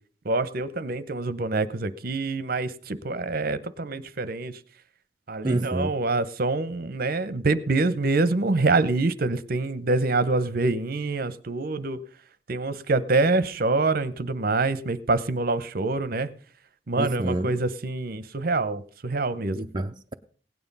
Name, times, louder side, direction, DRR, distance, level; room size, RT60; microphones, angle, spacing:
voice 1, 0.2-4.6 5.3-12.0 12.5-16.3 16.9-19.6, right 3 dB, 55° right, 0.8 m, -26 dB
voice 2, 5.4-5.9 17.0-17.5 19.5-20.1, right 2 dB, 25° right, 0.5 m, -28 dB
17.0 x 9.5 x 5.4 m
head